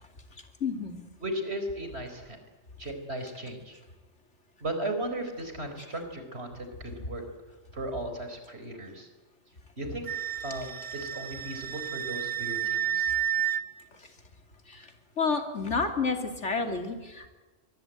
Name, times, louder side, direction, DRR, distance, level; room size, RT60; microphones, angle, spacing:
voice 1, 0.6-1.0 14.7-14.9 15.2-17.3, left 4 dB, 65° left, 5 dB, 3.2 m, -30 dB
voice 2, 1.2-2.4 2.8-3.8 4.6-7.2 7.7-9.1 9.8-10.1 10.4-13.1, right 1 dB, 55° right, 6 dB, 4.8 m, -36 dB
Wind instrument woodwind instrument, 10.1-13.6, right 9 dB, 30° right, 1.1 m, -31 dB
23.0 x 21.5 x 9.2 m, 1.2 s
omnidirectional pair, 1.3 m